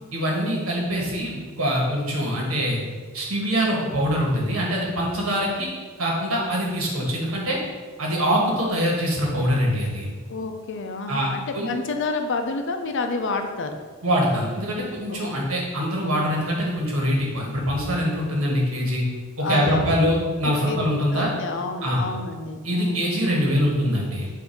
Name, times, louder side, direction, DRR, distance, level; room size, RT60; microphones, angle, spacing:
voice 1, 0.1-2.8 3.1-5.7 6.0-7.6 8.0-10.1 11.1-11.3 11.5-11.7 14.0-19.0 19.4-21.3 21.8-22.0 22.6-24.3, equal, 70° right, -2 dB, 1.6 m, -24 dB
voice 2, 10.3-13.8 15.1-15.5 19.4-19.8 20.7-23.1, left 3 dB, 55° left, 5 dB, 0.6 m, -29 dB
7.1 x 2.7 x 5.2 m, 1.5 s
head